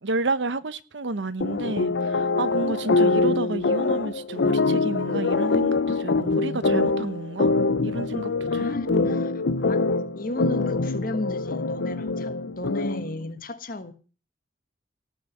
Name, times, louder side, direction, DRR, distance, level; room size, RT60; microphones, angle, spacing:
voice 1, 0.0-7.5 7.8-9.2, right 2 dB, 85° right, 1.0 m, -31 dB
sound 1, 1.4-13.2, left 3 dB, 80° left, 0.7 m, -24 dB
voice 2, 8.4-9.8 10.2-13.9, left 2 dB, 50° left, 1.5 m, -34 dB
18.0 x 6.2 x 7.2 m
head